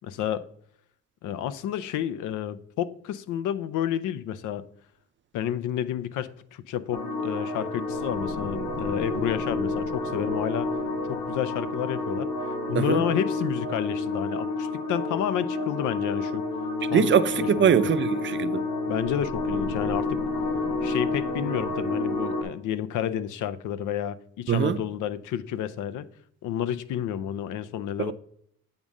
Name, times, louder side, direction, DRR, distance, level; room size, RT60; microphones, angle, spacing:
voice 1, 0.0-0.5 1.2-4.7 5.3-10.7 11.1-16.4 16.9-17.8 18.9-20.2 20.8-26.1 26.4-28.1, left 10 dB, 85° left, 0.5 m, -30 dB
sound 1, 6.9-22.4, left 2 dB, 70° left, 1.5 m, -29 dB
voice 2, 16.9-18.6 24.5-24.8 28.0-28.1, right 8 dB, 40° right, 0.5 m, -22 dB
8.8 x 3.7 x 5.2 m
cardioid pair, 90°, 30 cm